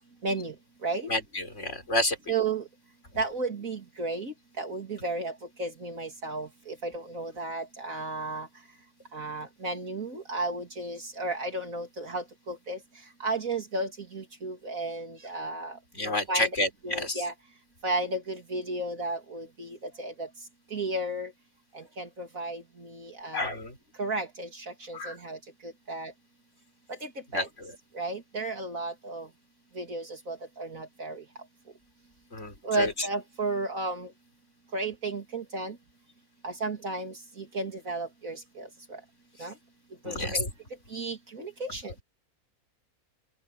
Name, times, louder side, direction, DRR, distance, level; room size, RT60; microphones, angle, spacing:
voice 1, 0.2-0.5 0.8-1.1 2.3-2.6 3.2-5.3 5.6-8.5 9.1-12.8 13.2-15.7 16.0-16.5 16.8-17.3 17.8-20.3 20.7-21.3 21.7-23.6 24.0-25.4 25.9-26.1 27.0-27.5 27.9-29.3 29.7-31.2 32.6-34.1 34.7-35.7 36.4-38.7 39.4-39.5 40.0-40.5 40.9-41.9, right 2 dB, 65° right, 3.3 m, -33 dB
voice 2, 1.1-2.2 15.9-17.2 23.3-23.8 24.9-25.2 27.3-27.7 32.3-33.1 40.0-40.4, left 2 dB, 50° left, 5.2 m, -30 dB
open air
omnidirectional pair, 1.5 m